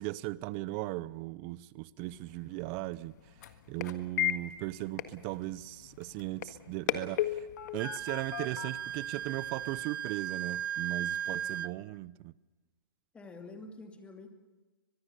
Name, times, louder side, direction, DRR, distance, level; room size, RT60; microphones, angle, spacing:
voice 1, 0.0-3.1 3.7-7.5 7.7-12.3, right 18 dB, 30° right, 0.7 m, -38 dB
sound 1, 2.0-9.9, left 12 dB, 50° left, 1.7 m, -38 dB
Wind instrument woodwind instrument, 7.8-11.7, right 10 dB, 65° right, 0.7 m, -36 dB
voice 2, 13.1-14.3, left 3 dB, 10° left, 2.6 m, -47 dB
24.0 x 21.0 x 7.0 m
hypercardioid pair, 145°, 12 cm